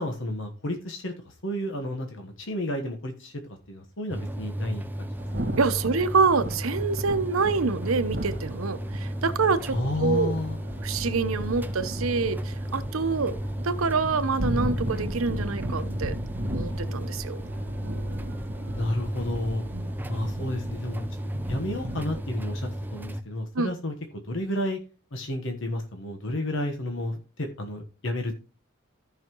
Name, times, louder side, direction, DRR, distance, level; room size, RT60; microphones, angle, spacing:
voice 1, 0.0-5.1 9.7-10.6 18.7-19.6 20.1-21.1 21.5-24.8 25.1-28.3, left 1 dB, 65° left, 1.2 m, -31 dB
sound 1, 4.1-23.2, right 1 dB, 10° right, 0.5 m, -34 dB
Thunder / Rain, 5.2-22.2, equal, 60° right, 2.1 m, -37 dB
voice 2, 5.6-10.3 10.8-13.3 13.6-16.1 16.5-17.4 19.7-19.9 23.5-23.7, right 4 dB, 90° right, 0.8 m, -26 dB
14.0 x 5.7 x 3.0 m
head